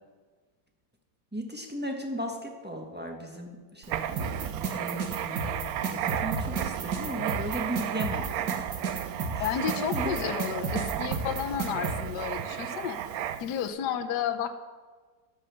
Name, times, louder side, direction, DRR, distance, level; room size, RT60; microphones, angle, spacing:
voice 1, 1.3-8.7 9.3-10.1, equal, 5° right, 2 dB, 1.3 m, -37 dB
Writing, 3.8-13.6, right 10 dB, 70° right, 0.9 m, -34 dB
sound 1, 4.2-12.0, right 4 dB, 90° right, 2.1 m, -32 dB
voice 2, 9.4-13.0 13.4-14.5, left 9 dB, 75° left, 7 dB, 1.4 m, -31 dB
12.5 x 6.5 x 7.9 m, 1.4 s
omnidirectional pair, 1.8 m